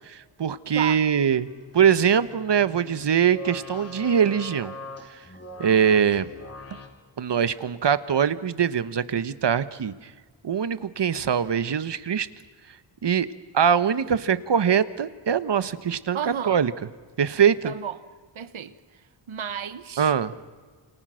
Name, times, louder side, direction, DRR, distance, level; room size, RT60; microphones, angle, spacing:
voice 1, 0.1-1.5 1.7-4.7 5.6-6.3 7.2-9.9 10.4-12.3 13.0-13.3 13.5-16.2 16.5-16.7 17.2-17.7 20.0-20.3, right 8 dB, 60° right, 1.2 m, -22 dB
sound 1, 1.2-6.9, left 1 dB, 30° left, 3.6 m, -42 dB
voice 2, 16.1-16.6 17.6-18.0 18.3-18.7 19.3-20.1, right 8 dB, 75° right, 1.4 m, -32 dB
29.0 x 28.0 x 6.4 m
wide cardioid pair, 150°, 48 cm